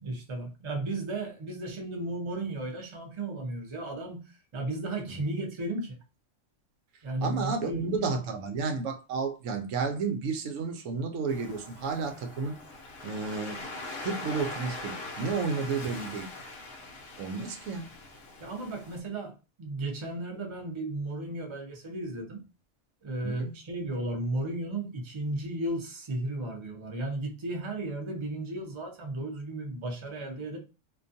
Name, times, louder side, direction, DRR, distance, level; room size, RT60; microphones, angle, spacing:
voice 1, 0.0-6.0 7.0-8.2 18.4-22.4 23.0-30.6, right 2 dB, 30° right, 0.6 m, -34 dB
voice 2, 7.2-12.6 13.0-13.6 14.0-16.3 17.2-17.9 23.2-23.6, right 4 dB, 85° right, 1.0 m, -32 dB
Waves surf, 11.3-19.0, left 2 dB, 60° left, 0.8 m, -42 dB
2.5 x 2.2 x 2.6 m
omnidirectional pair, 1.3 m